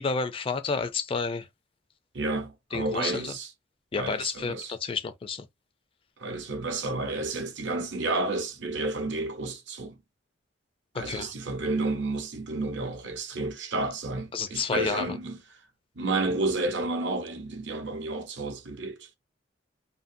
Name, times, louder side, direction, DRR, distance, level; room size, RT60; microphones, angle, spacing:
voice 1, 0.0-1.5 2.7-3.3 3.9-5.5 10.9-11.3 14.3-15.0, left 5 dB, 30° left, 0.3 m, -30 dB
voice 2, 2.1-3.5 4.0-4.7 6.2-10.0 10.9-15.4 16.0-19.1, right 2 dB, 70° right, 0.7 m, -31 dB
2.6 x 2.5 x 2.5 m
head